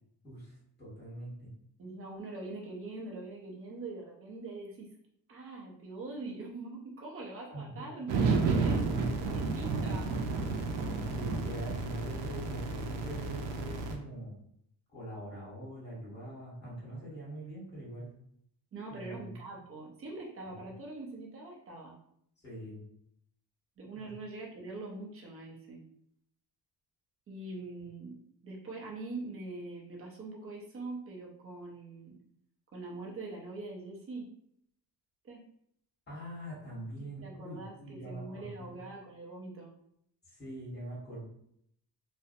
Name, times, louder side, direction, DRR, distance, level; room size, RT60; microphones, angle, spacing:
voice 1, 0.2-1.5 7.5-7.8 8.9-9.4 11.1-14.3 14.9-18.1 18.9-19.3 22.4-22.8 23.9-24.1 36.1-38.7 40.3-41.2, right 1 dB, 25° left, -7 dB, 1.4 m, -43 dB
voice 2, 1.8-4.9 5.3-8.1 8.4-10.3 18.7-22.0 23.8-25.9 27.3-32.2 32.7-34.3 35.2-35.4 37.2-39.7, right 2 dB, 30° right, -2 dB, 0.6 m, -43 dB
sound 1, 8.1-14.0, right 4 dB, 85° right, 0.6 m, -31 dB
2.5 x 2.0 x 2.6 m, 0.70 s
cardioid pair, 155°, 42 cm